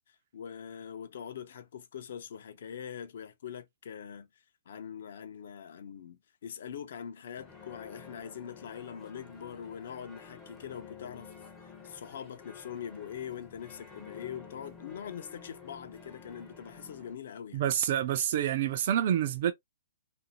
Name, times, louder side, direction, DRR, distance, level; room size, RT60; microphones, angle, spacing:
voice 1, 0.1-4.3 4.7-11.4 11.8-17.6, left 8 dB, 55° left, 0.5 m, -43 dB
sound 1, 7.4-17.2, left 6 dB, 10° left, 0.5 m, -50 dB
voice 2, 17.5-19.5, right 10 dB, 40° right, 0.3 m, -27 dB
2.5 x 2.1 x 2.8 m
hypercardioid pair, 170°, 0 cm